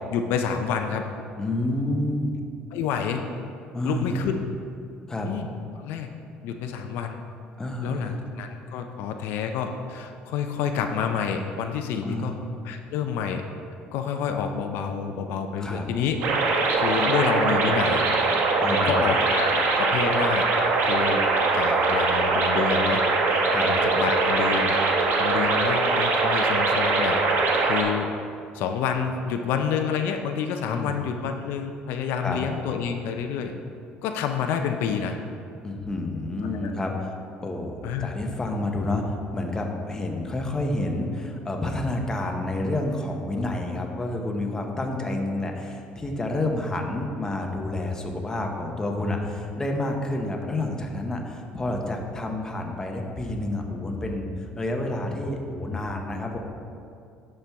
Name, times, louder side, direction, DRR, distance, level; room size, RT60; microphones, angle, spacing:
voice 1, 0.1-1.0 2.7-3.3 3.8-4.4 5.3-5.5 5.8-6.1 6.4-7.2 7.8-12.4 12.6-13.4 13.9-16.2 16.8-18.0 18.7-20.5 20.9-21.2 21.5-23.0 23.7-24.7 25.2-28.1 28.5-33.5 34.0-35.2 36.5-36.7 37.8-38.1, left 7 dB, 75° left, 5 dB, 0.5 m, -28 dB
voice 2, 1.4-2.3 3.7-4.1 5.1-5.3 7.6-8.2 12.0-12.4 15.6-15.9 18.6-19.0 23.5-23.7 30.7-31.0 32.2-32.4 35.6-37.1 37.4-56.4, left 2 dB, 15° left, 2 dB, 0.8 m, -29 dB
sound 1, 16.2-27.8, right 3 dB, 65° right, 1.0 m, -22 dB
11.0 x 4.4 x 3.5 m, 2.4 s
cardioid pair, 125°, 4 cm